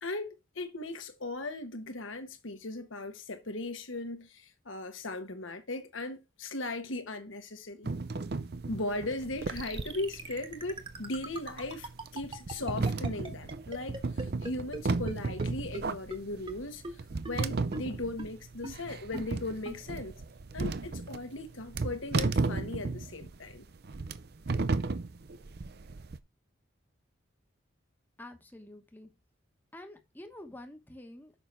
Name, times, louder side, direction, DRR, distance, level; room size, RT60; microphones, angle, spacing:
voice 1, 0.0-7.9 8.7-16.8 17.2-20.1 20.5-23.6, left 2 dB, 80° left, 1.4 m, -38 dB
sound 1, 7.8-26.2, right 3 dB, 50° right, 0.6 m, -34 dB
sound 2, 9.6-14.8 15.1-15.2 15.4-15.5 15.7-15.8 16.1-16.2 16.5-16.6 16.8-16.9 17.2-17.3 17.7-17.8 18.2-18.3 18.6-18.7 19.1-19.2 19.6-19.8, right 2 dB, 25° right, 1.2 m, -39 dB
voice 2, 28.2-29.1 29.7-31.3, left 1 dB, 10° left, 1.0 m, -48 dB
6.9 x 5.6 x 4.5 m
head